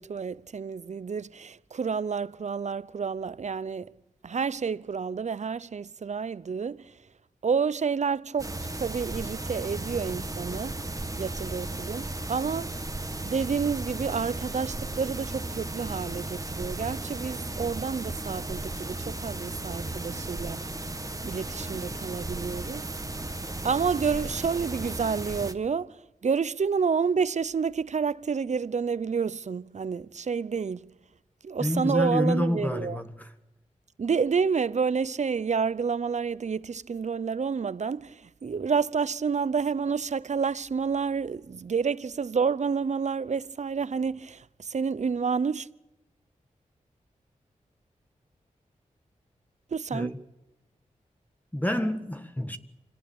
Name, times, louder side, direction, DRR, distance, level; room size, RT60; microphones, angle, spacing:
voice 1, 0.0-3.9 4.2-6.8 7.4-10.8 11.2-12.8 13.2-20.6 21.2-22.9 23.6-26.0 26.2-30.8 31.4-33.0 34.0-38.2 38.4-45.7 49.7-50.1, right 5 dB, 55° right, 0.7 m, -29 dB
sound 1, 8.4-25.5, right 2 dB, 25° right, 2.0 m, -35 dB
voice 2, 31.6-33.3 49.9-50.2 51.5-52.6, equal, 10° left, 1.7 m, -28 dB
25.5 x 18.5 x 8.9 m
cardioid pair, 50°, 14 cm